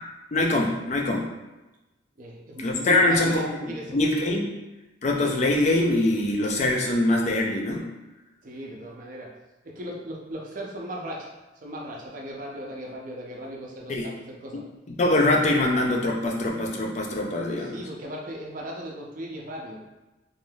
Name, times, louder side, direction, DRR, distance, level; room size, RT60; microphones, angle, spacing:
voice 1, 0.3-1.3 2.6-4.5 5.0-7.9 13.9-14.1 14.9-17.8, left 2 dB, 35° left, 1 dB, 0.4 m, -23 dB
voice 2, 2.2-4.0 8.4-9.3 9.6-11.3 11.6-14.6 17.6-19.8, equal, 45° right, -2 dB, 0.5 m, -37 dB
3.3 x 2.6 x 2.3 m, 1.1 s
head